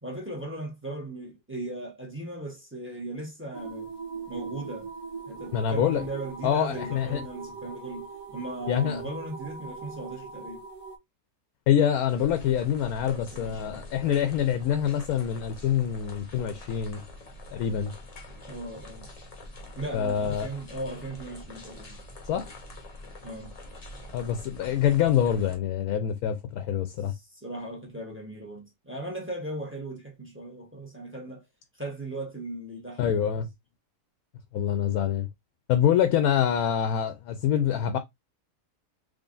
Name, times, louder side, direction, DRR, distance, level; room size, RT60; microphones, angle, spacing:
voice 1, 0.0-3.9 4.3-4.9 5.3-10.6 13.1-13.8 18.5-19.1 19.8-22.0 23.2-23.5 27.1-31.4 31.8-33.3, right 2 dB, 10° right, 1.0 m, -38 dB
sound 1, 3.5-11.0, right 5 dB, 65° right, 1.2 m, -40 dB
voice 2, 5.5-6.0 6.4-7.2 8.7-9.0 11.7-17.0 17.5-17.9 19.9-20.5 22.3-22.5 24.1-27.1 33.0-33.5 34.5-35.3 35.7-38.0, left 9 dB, 75° left, 1.0 m, -25 dB
sound 2, 12.1-25.6, left 1 dB, 30° left, 0.7 m, -45 dB
3.7 x 3.4 x 2.5 m
omnidirectional pair, 1.6 m